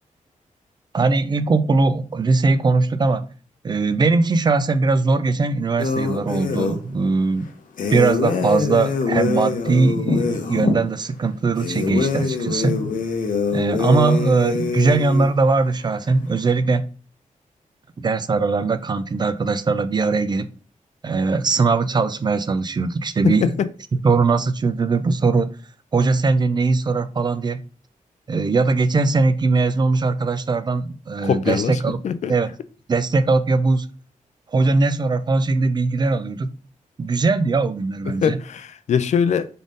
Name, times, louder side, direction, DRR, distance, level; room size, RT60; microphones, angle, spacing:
voice 1, 0.9-3.3 3.6-7.5 7.9-12.8 13.5-16.9 18.0-20.5 21.0-23.6 24.0-25.5 25.9-27.6 28.3-32.0 32.3-32.5 32.9-33.9 34.5-36.5 37.0-38.4, right 3 dB, 30° right, 0.3 m, -20 dB
sound 1, 5.8-6.8 7.8-10.8 11.6-15.3, left 4 dB, 70° left, 0.8 m, -24 dB
voice 2, 23.2-23.7 31.2-31.7 32.0-32.3 38.2-39.5, left 7 dB, 55° left, 0.4 m, -21 dB
3.9 x 3.6 x 3.7 m
wide cardioid pair, 165°, 14 cm